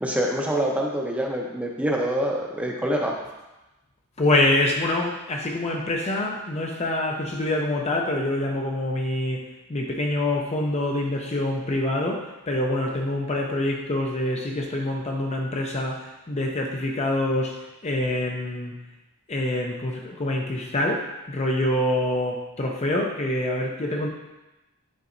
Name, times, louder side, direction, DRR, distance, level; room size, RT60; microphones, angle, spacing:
voice 1, 0.0-3.2, equal, 5° right, -1 dB, 0.7 m, -25 dB
voice 2, 4.2-9.4 9.7-17.6 17.8-18.7 19.3-24.1, left 1 dB, 30° left, 1 dB, 0.6 m, -25 dB
9.8 x 3.9 x 2.6 m, 1.0 s
head